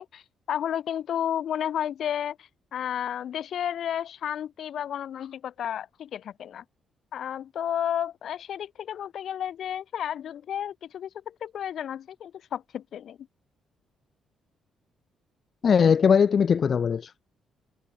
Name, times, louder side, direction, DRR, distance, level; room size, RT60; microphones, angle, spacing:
voice 1, 0.0-6.6 7.1-13.2, left 9 dB, 65° left, 2.7 m, -32 dB
voice 2, 15.6-17.3, left 6 dB, 50° left, 1.0 m, -20 dB
cardioid pair, 90°, 0 cm